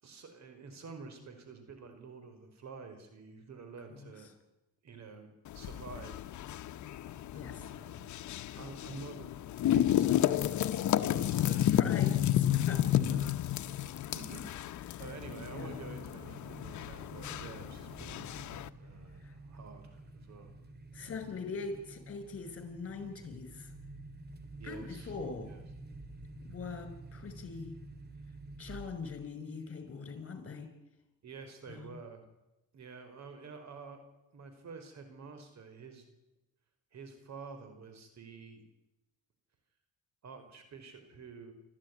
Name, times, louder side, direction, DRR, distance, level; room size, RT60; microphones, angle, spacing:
voice 1, 0.0-4.3 4.8-6.2 7.3-8.1 8.5-9.3 9.7-11.7 12.0-12.1 12.5-12.7 12.9-14.5 15.0-18.3 18.6-20.5 21.0-21.1 24.6-25.2 25.4-25.6 31.2-32.2 32.7-34.0 34.3-36.0 36.9-38.6 40.2-41.5, right 4 dB, 65° right, 8 dB, 5.1 m, -49 dB
sound 1, 5.5-18.7, left 12 dB, 70° left, 1.0 m, -32 dB
voice 2, 7.4-7.7 11.7-12.8 14.9-15.0 15.5-15.8 19.2-19.3 20.9-23.7 24.6-25.5 26.4-27.8 28.6-30.7 31.7-32.0, left 4 dB, 45° left, 8 dB, 5.5 m, -42 dB
sound 2, 15.0-29.3, right 2 dB, 35° right, 2.7 m, -50 dB
28.0 x 13.5 x 9.9 m, 0.98 s
cardioid pair, 90°, 30 cm